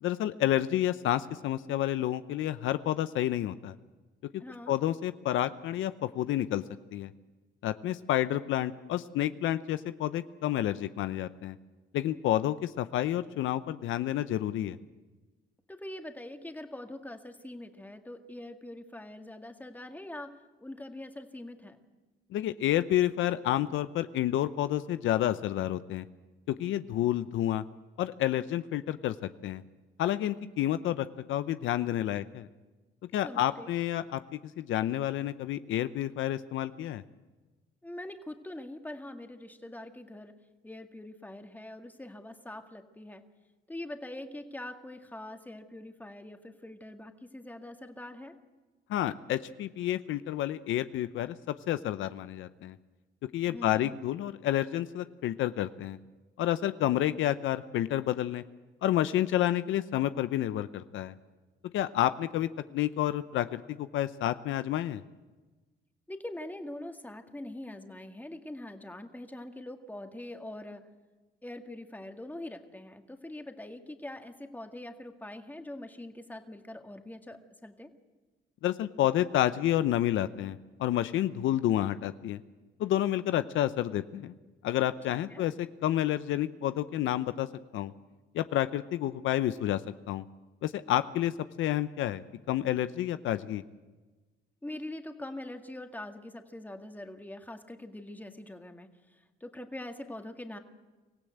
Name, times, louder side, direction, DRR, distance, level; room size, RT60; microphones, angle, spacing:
voice 1, 0.0-3.7 4.7-6.6 6.9-7.1 7.6-11.6 11.9-14.8 22.3-26.0 26.5-27.6 28.0-29.6 30.0-32.5 33.1-34.2 34.6-37.0 48.9-51.4 51.7-52.8 53.3-56.0 56.4-58.4 58.8-61.1 61.7-65.0 78.6-82.4 82.8-84.3 84.6-87.5 87.7-87.9 88.3-89.8 90.1-90.2 90.6-91.3 91.6-93.6, left 12 dB, 80° left, 12 dB, 0.7 m, -29 dB
voice 2, 4.4-4.8 15.7-21.8 33.2-33.7 37.8-40.3 40.6-43.2 43.7-48.4 53.5-54.0 66.1-70.8 71.4-77.9 85.3-85.4 94.6-100.6, left 1 dB, 10° left, 5 dB, 2.0 m, -43 dB
24.5 x 16.0 x 8.1 m, 1.2 s
cardioid pair, 90°, 20 cm